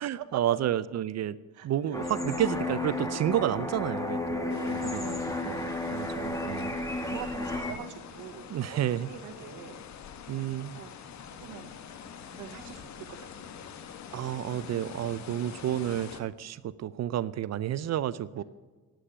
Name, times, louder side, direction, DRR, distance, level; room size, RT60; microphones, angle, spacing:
voice 1, 0.0-1.4 1.6-7.1 8.5-9.1 10.3-10.8 14.1-18.4, right 11 dB, 60° right, 17 dB, 0.6 m, -31 dB
voice 2, 1.5-2.0 4.6-5.2 7.0-8.8 9.1-9.8 10.7-10.9 11.3-11.7 12.3-13.7, right 10 dB, 85° right, 5 dB, 1.1 m, -44 dB
sound 1, 1.9-7.7, left 2 dB, 10° left, 2.2 m, -32 dB
sound 2, 4.5-16.2, left 7 dB, 65° left, 1.4 m, -46 dB
11.5 x 9.3 x 9.9 m, 1.4 s
cardioid pair, 90°, 30 cm